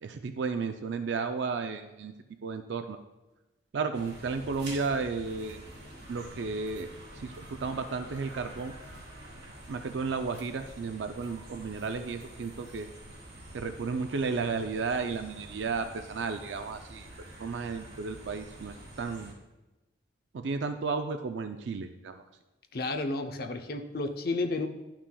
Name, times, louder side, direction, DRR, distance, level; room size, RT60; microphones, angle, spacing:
voice 1, 0.0-2.1 2.4-3.0 3.7-5.6 6.1-6.9 7.2-8.7 9.7-12.9 13.5-17.1 17.4-19.3 20.3-22.2, right 4 dB, 70° right, 7 dB, 0.4 m, -33 dB
sound 1, 3.9-19.3, right 1 dB, 90° right, 2.5 m, -47 dB
voice 2, 22.7-24.7, left 2 dB, 55° left, 6 dB, 0.6 m, -31 dB
11.0 x 5.9 x 2.3 m, 1.0 s
head